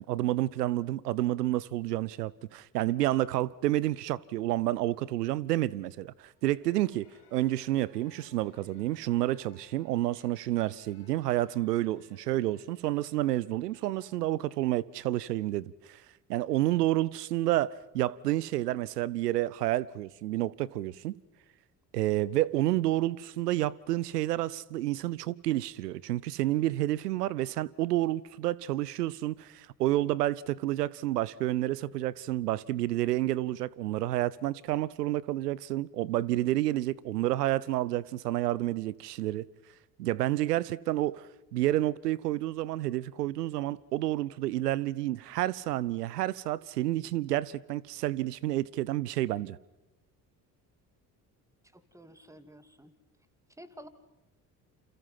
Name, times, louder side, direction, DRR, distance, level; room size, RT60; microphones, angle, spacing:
voice 1, 0.0-7.1 7.3-16.0 16.3-21.1 21.9-39.5 40.0-49.6, right 15 dB, 80° right, 0.8 m, -29 dB
sound 1, 6.3-15.0, left 7 dB, 80° left, 4.8 m, -62 dB
voice 2, 51.7-52.9 53.6-53.9, equal, 5° right, 2.7 m, -51 dB
29.0 x 28.5 x 5.8 m
figure-of-eight pair, 55°, 47 cm